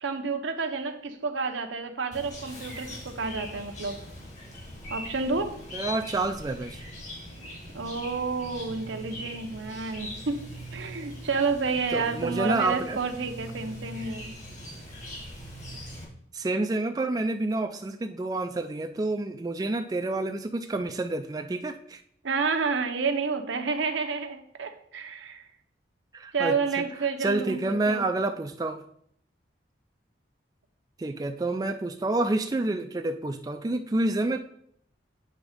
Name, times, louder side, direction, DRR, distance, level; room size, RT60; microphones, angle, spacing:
voice 1, 0.0-4.0 4.9-5.6 7.7-10.5 10.7-14.3 22.2-25.4 26.3-28.1, right 4 dB, 85° right, 6 dB, 0.8 m, -30 dB
Chirp tweet, 2.1-16.0, equal, 40° left, 1.7 m, -41 dB
voice 2, 5.7-6.8 11.9-13.0 16.3-22.0 26.1-26.6 27.2-28.8 31.0-34.4, right 2 dB, 20° right, 5 dB, 0.3 m, -28 dB
7.9 x 3.6 x 5.0 m, 0.67 s
head